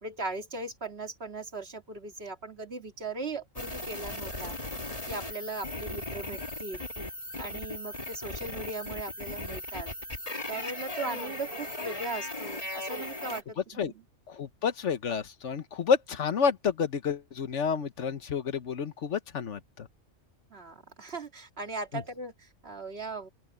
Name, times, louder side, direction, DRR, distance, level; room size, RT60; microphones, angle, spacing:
voice 1, 0.0-4.6 5.1-6.9 7.4-9.9 10.5-14.0 20.5-23.3, right 3 dB, 55° right, 2.4 m, -38 dB
sound 1, 3.6-13.4, left 2 dB, 30° left, 2.0 m, -37 dB
voice 2, 14.3-19.9, left 6 dB, 75° left, 1.4 m, -29 dB
open air
omnidirectional pair, 1.2 m